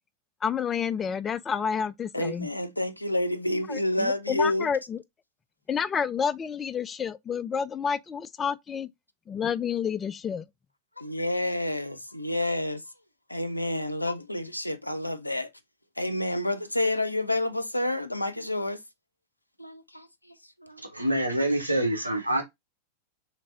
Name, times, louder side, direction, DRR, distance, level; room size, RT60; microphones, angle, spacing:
voice 1, 0.4-2.5 3.7-5.0 5.7-8.9 9.3-10.5, left 7 dB, 20° left, 0.3 m, -29 dB
voice 2, 2.1-4.7 11.0-12.8 13.3-15.5 16.0-18.8 19.6-20.8, left 1 dB, 85° left, 0.5 m, -29 dB
voice 3, 20.8-22.4, right 1 dB, 85° right, 0.8 m, -26 dB
3.3 x 3.3 x 3.6 m
figure-of-eight pair, 90°, 0 cm